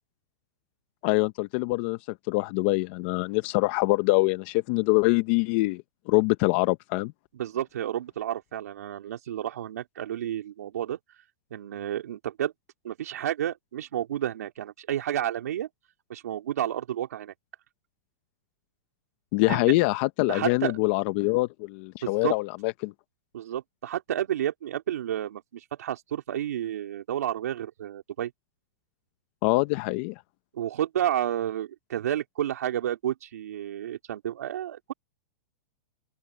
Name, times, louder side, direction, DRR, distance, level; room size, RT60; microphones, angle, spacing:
voice 1, 1.0-2.0 2.3-7.1 19.3-22.9 29.4-30.1, left 23 dB, 45° left, 0.9 m, -24 dB
voice 2, 7.3-11.0 11.5-12.5 12.8-15.7 16.1-17.3 19.5-19.7 20.3-20.8 22.0-22.3 23.3-28.3 30.5-34.9, right 11 dB, 80° right, 3.9 m, -31 dB
open air
hypercardioid pair, 140°, 9 cm